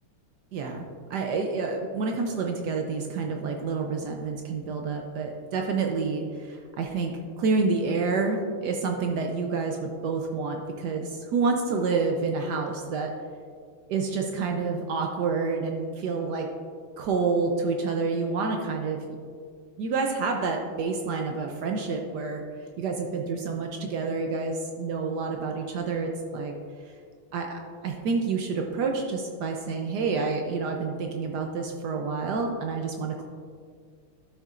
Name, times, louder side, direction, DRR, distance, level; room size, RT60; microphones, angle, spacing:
voice 1, 0.5-13.1 13.9-16.5 17.0-19.0 19.8-22.4 22.8-26.5 26.8-26.9 27.3-33.2, right 4 dB, 70° right, 2 dB, 1.0 m, -28 dB
11.5 x 6.6 x 2.5 m, 2.1 s
omnidirectional pair, 2.4 m